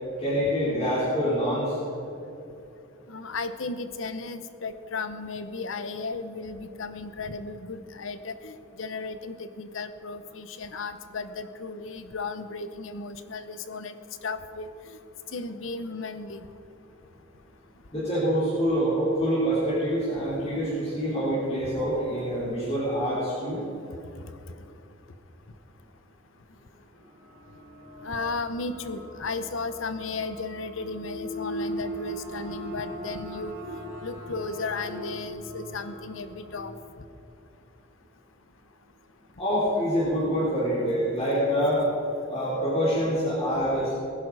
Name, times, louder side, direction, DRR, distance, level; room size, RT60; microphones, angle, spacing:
voice 1, 0.2-1.8 17.9-23.6 39.4-41.8 42.3-43.9, equal, 30° left, -11 dB, 4.1 m, -26 dB
voice 2, 3.1-13.9 14.2-14.7 15.3-16.4 28.0-36.7, left 3 dB, 70° left, 10 dB, 0.9 m, -35 dB
sound 1, 27.2-36.6, equal, 5° right, 4.3 m, -40 dB
Bowed string instrument, 31.2-35.5, equal, 70° right, 2.6 m, -44 dB
20.0 x 11.0 x 4.9 m, 2.8 s
head